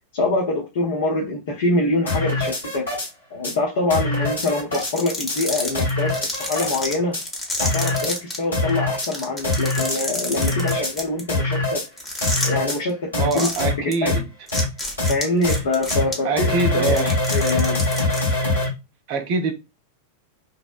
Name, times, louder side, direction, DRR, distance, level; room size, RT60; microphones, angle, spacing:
voice 1, 0.1-2.9 3.3-7.2 7.6-11.8 12.4-14.2 15.1-17.8, left 2 dB, 55° left, 0.5 m, -25 dB
sound 1, 2.1-3.1 3.4-3.5 3.9-4.9 5.3-5.4 5.7-6.8 7.1-7.2 7.6-8.2 8.5-9.1 9.4-10.0 10.4-10.9 11.3-11.8 12.2-12.8 13.1-13.3 13.6-13.7 14.1-14.2 14.5-14.6 15.0-15.1 15.4-15.6 15.9-16.0 16.4-18.7, left 2 dB, 75° left, 1.3 m, -23 dB
sound 2, 4.4-8.4 8.7-8.8 9.0-11.2 12.0-12.7 13.3-13.6 13.9-14.0 14.5-16.1 16.7-18.2, left 1 dB, 15° left, 1.0 m, -28 dB
voice 2, 13.2-14.3 16.2-17.1 19.1-19.5, right 4 dB, 45° right, 0.5 m, -24 dB
2.6 x 2.1 x 2.4 m
figure-of-eight pair, 90°, 0 cm